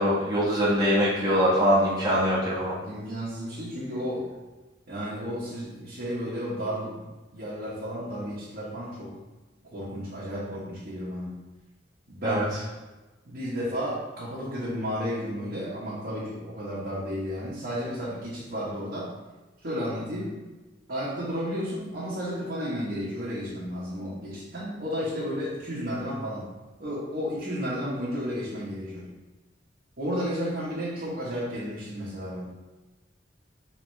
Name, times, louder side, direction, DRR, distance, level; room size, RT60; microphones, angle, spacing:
voice 1, 0.0-2.7 12.2-12.4, equal, 20° right, -9 dB, 1.1 m, -23 dB
voice 2, 1.2-2.0 2.8-4.3 4.9-9.2 9.7-11.4 12.1-12.5 13.2-19.1 19.6-20.4 20.9-26.5 26.8-29.1 30.0-32.4, equal, 55° right, -10 dB, 1.3 m, -33 dB
4.7 x 3.4 x 3.3 m, 1.2 s
head